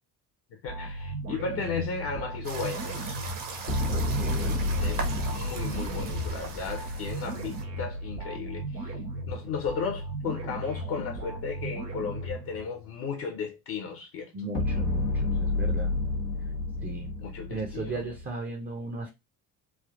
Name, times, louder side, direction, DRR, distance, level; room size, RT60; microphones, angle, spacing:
voice 1, 0.5-3.2 4.8-9.0 9.3-14.3 17.2-18.0, left 5 dB, 50° left, 0.7 m, -35 dB
sound 1, 0.7-12.9, right 2 dB, 85° right, 0.7 m, -37 dB
sound 2, 2.4-7.6, right 4 dB, 40° right, 0.9 m, -39 dB
sound 3, 3.7-8.0 14.5-18.3, left 2 dB, 85° left, 0.8 m, -30 dB
voice 2, 3.9-4.6 14.3-15.9 16.8-17.1 17.5-19.1, right 3 dB, 20° right, 0.6 m, -36 dB
3.3 x 2.4 x 2.4 m
figure-of-eight pair, 45°, 47 cm